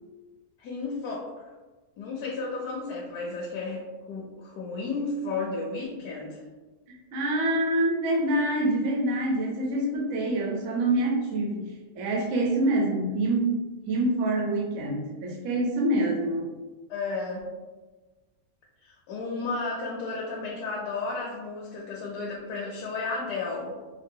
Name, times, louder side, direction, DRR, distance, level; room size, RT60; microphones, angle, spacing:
voice 1, 0.6-1.5 2.0-3.8 4.1-6.4 16.9-17.5 18.8-23.7, left 3 dB, 75° left, -3 dB, 1.2 m, -33 dB
voice 2, 7.1-13.6 13.9-16.5, right 1 dB, 60° right, -1 dB, 0.9 m, -26 dB
4.6 x 2.1 x 2.7 m, 1.2 s
omnidirectional pair, 1.7 m